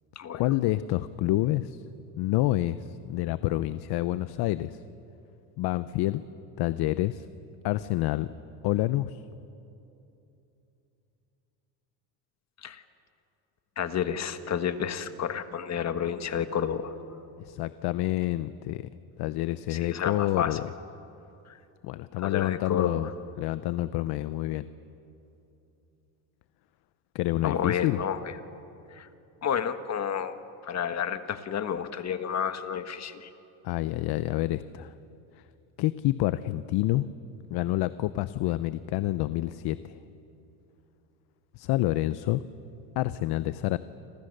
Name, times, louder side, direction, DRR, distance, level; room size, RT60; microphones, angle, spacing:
voice 1, 0.3-1.8 2.2-4.8 5.6-6.2 6.6-7.3 7.6-8.3 8.6-9.2 17.4-18.9 19.2-20.6 21.8-23.1 23.4-24.7 27.1-28.0 33.6-34.9 35.8-37.1 37.5-40.0 41.6-42.4 43.0-43.8, left 16 dB, 65° left, 14 dB, 0.8 m, -28 dB
voice 2, 13.8-16.9 19.7-20.6 21.5-21.6 22.2-23.1 27.4-28.3 28.9-29.1 29.4-33.3, left 8 dB, 40° left, 10 dB, 1.5 m, -31 dB
28.0 x 26.5 x 6.7 m, 2.8 s
cardioid pair, 115°, 43 cm